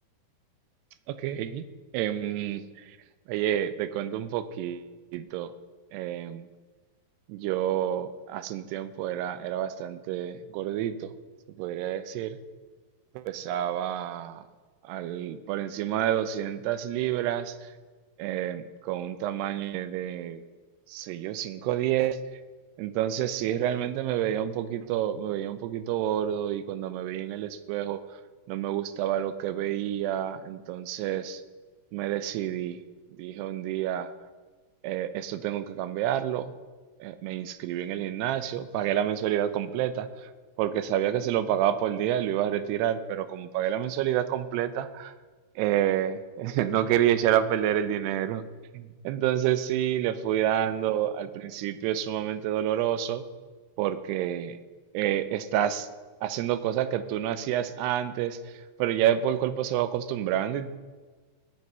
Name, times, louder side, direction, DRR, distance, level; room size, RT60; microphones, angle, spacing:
voice 1, 1.1-1.6 1.9-3.0 3.3-5.5 5.9-6.5 7.3-11.1 11.6-12.4 13.1-14.4 14.8-17.7 18.2-20.4 20.9-22.2 22.8-28.2 28.5-31.4 31.9-32.8 33.2-34.1 34.8-36.5 37.0-40.3 40.6-45.1 45.6-48.4 48.7-53.2 53.8-54.6 54.9-55.9 56.2-60.7, right 11 dB, 90° right, 12 dB, 2.8 m, -29 dB
21.0 x 7.9 x 5.5 m, 1.4 s
omnidirectional pair, 4.7 m